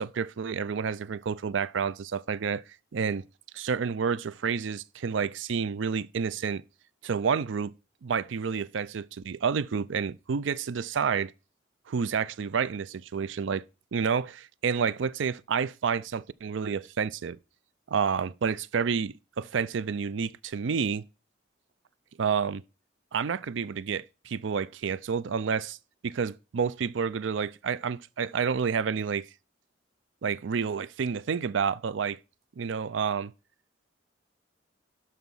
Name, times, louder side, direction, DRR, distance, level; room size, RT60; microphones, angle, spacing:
voice 1, 0.0-2.6 2.9-3.2 3.5-6.6 7.0-7.7 8.0-11.3 11.9-13.6 13.9-17.4 17.9-21.0 22.2-22.6 23.1-25.8 26.0-29.3 30.2-32.2 32.6-33.3, right 6 dB, 75° right, 0.4 m, -29 dB
12.0 x 4.3 x 5.5 m
head